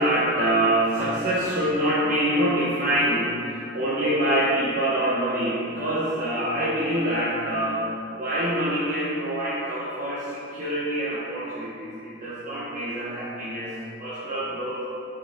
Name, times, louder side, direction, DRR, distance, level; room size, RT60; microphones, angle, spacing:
voice 1, 0.0-14.9, right 1 dB, 45° right, -10 dB, 1.1 m, -25 dB
8.7 x 5.0 x 3.7 m, 2.6 s
head